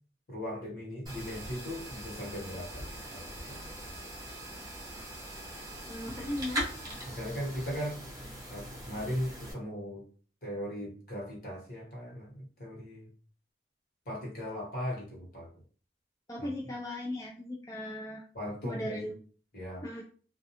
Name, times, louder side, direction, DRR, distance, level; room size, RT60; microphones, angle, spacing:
voice 1, 0.3-3.7 7.1-8.0 8.5-10.0 10.4-13.1 14.0-15.5 16.4-16.5 18.3-19.1 19.5-19.9, equal, 55° left, -3 dB, 1.1 m, -38 dB
sound 1, 1.1-9.5, equal, 20° right, 0.9 m, -41 dB
voice 2, 5.9-6.7 16.3-18.2 18.6-19.1 19.8-20.0, left 1 dB, 20° left, -3 dB, 0.3 m, -37 dB
2.3 x 2.2 x 2.8 m, 0.42 s
head